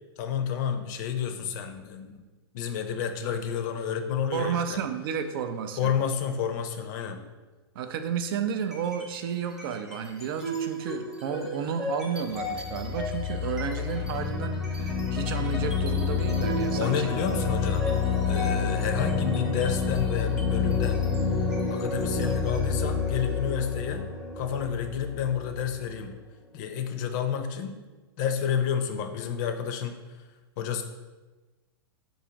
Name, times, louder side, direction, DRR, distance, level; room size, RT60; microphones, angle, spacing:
voice 1, 0.2-2.2 2.5-4.8 5.8-7.2 16.8-17.9 18.3-21.1 21.7-24.1 24.4-26.2 26.5-27.8 28.2-30.0 30.6-30.8, left 8 dB, 45° left, 7 dB, 0.5 m, -30 dB
voice 2, 4.3-5.9 7.7-17.1, right 7 dB, 55° right, 8 dB, 0.4 m, -32 dB
sound 1, 8.6-9.2 9.5-26.1, left 4 dB, ahead, 0.7 m, -29 dB
4.7 x 2.5 x 3.9 m, 1.2 s
hypercardioid pair, 130°, 14 cm